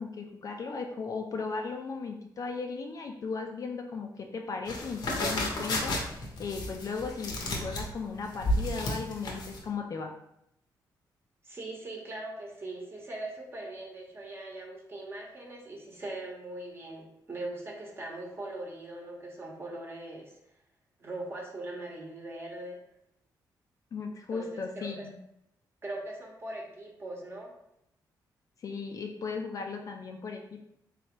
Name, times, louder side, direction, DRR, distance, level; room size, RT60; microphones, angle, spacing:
voice 1, 0.0-10.1 23.9-25.1 28.6-30.6, left 4 dB, 50° left, 2 dB, 0.5 m, -36 dB
sound 1, 4.7-9.6, left 1 dB, 65° left, 0.8 m, -32 dB
voice 2, 11.4-20.3 21.0-22.8 24.3-25.1 25.8-27.5, right 2 dB, 30° right, -1 dB, 1.0 m, -40 dB
3.3 x 3.2 x 3.0 m, 0.77 s
cardioid pair, 100°, 8 cm